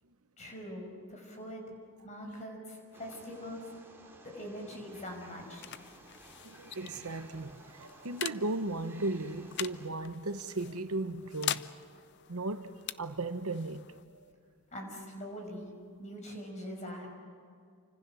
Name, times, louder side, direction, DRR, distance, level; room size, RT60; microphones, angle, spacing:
voice 1, 0.4-1.7 2.0-3.7 4.3-5.8 14.7-15.7 16.0-17.1, equal, 30° left, 5.7 m, -43 dB
Wild animals, 2.9-9.9, right 2 dB, 10° right, 2.9 m, -55 dB
sound 1, 4.8-16.2, left 11 dB, 50° left, 0.6 m, -44 dB
voice 2, 6.4-11.7 12.3-12.7 13.0-14.0, right 2 dB, 80° right, 1.1 m, -36 dB
29.0 x 25.5 x 6.4 m
head